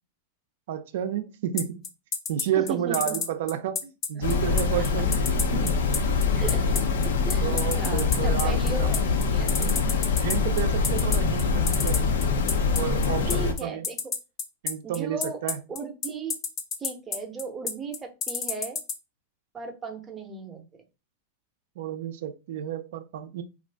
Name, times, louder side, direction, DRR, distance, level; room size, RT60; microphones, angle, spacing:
voice 1, 0.7-1.8 2.3-5.2 5.5-5.8 7.4-8.9 10.1-12.1 12.8-13.9 14.6-15.6 21.8-23.4, right 10 dB, 65° right, 0.4 m, -31 dB
sound 1, 1.6-18.9, left 6 dB, 30° left, 0.5 m, -29 dB
voice 2, 2.6-3.2 4.2-4.3 6.3-6.6 7.2-9.7 13.3-14.0 14.8-15.4 15.7-16.4 16.8-18.8 19.5-20.8, right 4 dB, 15° right, 0.6 m, -36 dB
sound 2, 4.2-13.5, left 4 dB, 85° left, 0.6 m, -24 dB
2.6 x 2.4 x 3.3 m
supercardioid pair, 140°, 0 cm